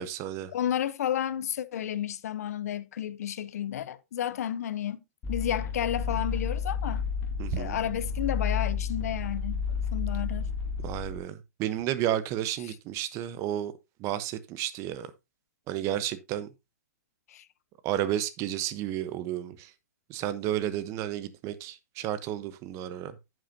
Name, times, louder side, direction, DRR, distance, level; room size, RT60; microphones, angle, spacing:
voice 1, 0.0-0.5 7.4-7.8 10.8-13.7 14.0-15.1 15.7-16.5 17.8-19.7 20.1-23.1, right 12 dB, 35° right, 1.0 m, -32 dB
voice 2, 0.5-5.0 5.3-7.0 7.6-9.6 9.9-10.5 12.6-12.7 17.3-17.5, left 10 dB, 65° left, 0.7 m, -31 dB
sound 1, 5.2-11.2, left 6 dB, 25° left, 2.2 m, -31 dB
10.0 x 7.7 x 2.8 m
hypercardioid pair, 120°, 9 cm